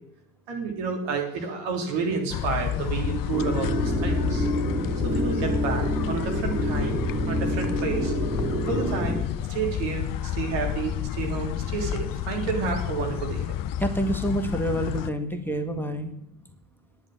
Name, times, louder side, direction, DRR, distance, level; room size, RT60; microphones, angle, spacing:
voice 1, 0.5-4.5 5.0-8.1 8.6-9.2 9.5-13.5, right 5 dB, 65° right, 2 dB, 3.3 m, -30 dB
sound 1, 2.3-15.1, left 10 dB, 45° left, 0.8 m, -30 dB
sound 2, 3.3-9.2, right 2 dB, 20° right, 2.9 m, -28 dB
voice 2, 13.8-16.1, equal, 5° left, 6 dB, 1.7 m, -27 dB
10.5 x 7.1 x 8.3 m, 0.81 s
hypercardioid pair, 60°, 47 cm